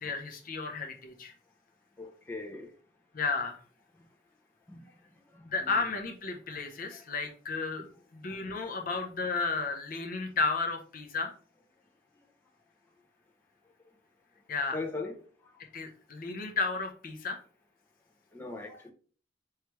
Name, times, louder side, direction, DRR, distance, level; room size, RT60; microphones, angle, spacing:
voice 1, 0.0-1.3 3.1-3.6 5.4-7.9 8.1-11.3 14.5-14.8 15.7-17.4, left 4 dB, 45° left, 0.7 m, -33 dB
voice 2, 2.0-2.7 4.7-4.8 5.6-5.8 14.7-15.2 18.3-18.9, left 3 dB, 10° left, 0.7 m, -38 dB
4.6 x 3.2 x 3.1 m
head